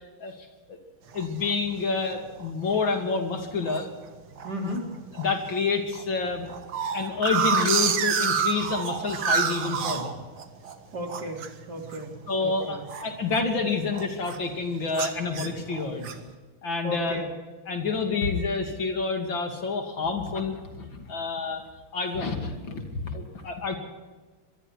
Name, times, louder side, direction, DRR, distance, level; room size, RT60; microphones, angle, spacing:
voice 1, 1.1-3.9 5.2-6.5 6.9-10.1 12.3-16.1 16.6-17.2 17.7-21.6 21.9-23.8, left 4 dB, 65° left, 4 dB, 3.5 m, -28 dB
sound 1, 1.1-1.5 2.0-2.1 2.4-2.7 3.1-3.8 4.4-4.8 5.1-5.3 5.5-5.6 5.9-10.8 11.1-13.6 13.9-14.4 14.9-16.3, right 6 dB, 85° right, 2.4 m, -28 dB
voice 2, 4.4-4.9 10.9-12.8 16.8-17.3, equal, 50° right, 1 dB, 4.3 m, -35 dB
25.5 x 22.0 x 4.6 m, 1.3 s
omnidirectional pair, 2.3 m